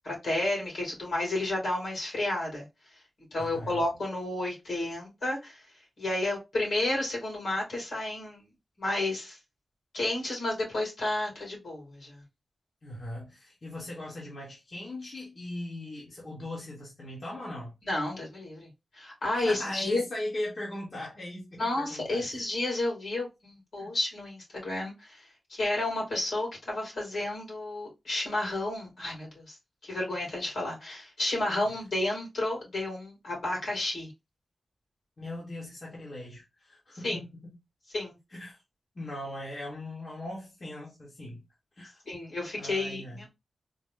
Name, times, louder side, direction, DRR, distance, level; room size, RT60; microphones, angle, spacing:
voice 1, 0.0-2.7 3.3-5.6 6.0-8.5 8.8-9.4 9.9-12.2 17.8-20.0 21.6-29.6 29.8-34.1 37.0-37.2 37.9-38.2 42.1-43.3, left 2 dB, 70° left, 2.6 m, -31 dB
voice 2, 3.4-3.8 12.8-17.7 19.3-22.4 23.8-23.9 35.2-37.5 38.3-38.6 38.9-41.4 41.8-42.0 42.6-43.2, left 1 dB, 45° left, 1.3 m, -39 dB
4.0 x 2.2 x 3.7 m
wide cardioid pair, 130°, 0 cm